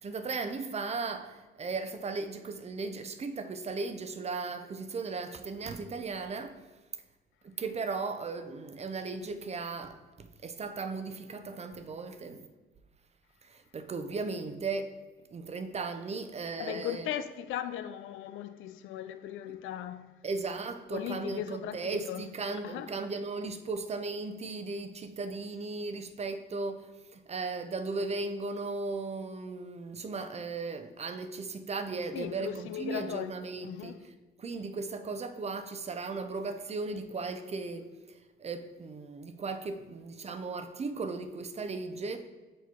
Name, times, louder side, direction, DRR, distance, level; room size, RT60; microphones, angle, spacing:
voice 1, 0.0-6.6 7.4-12.5 13.4-14.9 15.3-17.1 19.5-19.6 20.2-42.2, right 3 dB, 35° right, 0.5 m, -37 dB
voice 2, 16.6-20.1 20.9-22.3 22.6-22.9 32.1-33.3 33.6-34.0, left 10 dB, 85° left, 0.4 m, -37 dB
5.9 x 3.1 x 5.7 m
cardioid pair, 90°, 20 cm